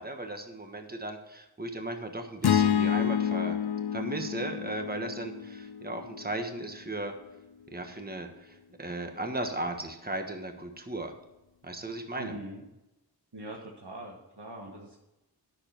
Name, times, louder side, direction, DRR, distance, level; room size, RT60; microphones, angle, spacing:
voice 1, 0.0-3.6 3.9-7.1 7.7-11.1 11.6-12.4, right 2 dB, 25° right, 5 dB, 1.3 m, -36 dB
sound 1, 2.4-6.7, left 8 dB, 70° left, 0.6 m, -29 dB
voice 2, 12.2-12.6 13.3-15.0, right 1 dB, 85° right, -1 dB, 1.4 m, -42 dB
9.8 x 6.7 x 5.8 m, 0.97 s
wide cardioid pair, 50°, 40 cm